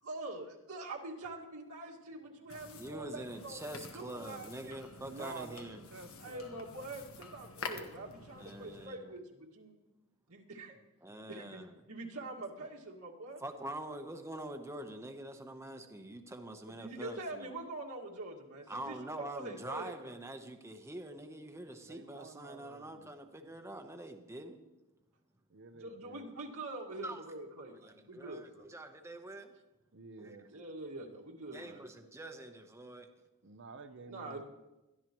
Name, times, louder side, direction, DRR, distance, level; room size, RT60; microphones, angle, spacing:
voice 1, 0.0-3.6 3.9-4.8 6.2-9.7 10.3-10.8 11.3-11.6 11.9-13.4 16.7-20.1 25.7-28.7 30.5-31.8 34.1-34.4, right 2 dB, 80° right, -2 dB, 2.0 m, -45 dB
sound 1, 2.5-8.9, left 4 dB, 65° left, 1.4 m, -48 dB
voice 2, 2.8-5.8 8.3-9.1 11.0-11.7 13.4-17.5 18.7-24.6 27.0-27.2 27.8-29.5 30.2-30.6 31.5-33.1, right 1 dB, 10° right, 5 dB, 1.0 m, -45 dB
voice 3, 5.0-6.7 21.8-23.1 25.5-26.3 29.9-30.5 33.4-34.4, right 4 dB, 55° right, 10 dB, 0.8 m, -50 dB
21.5 x 13.5 x 3.1 m, 1.0 s
head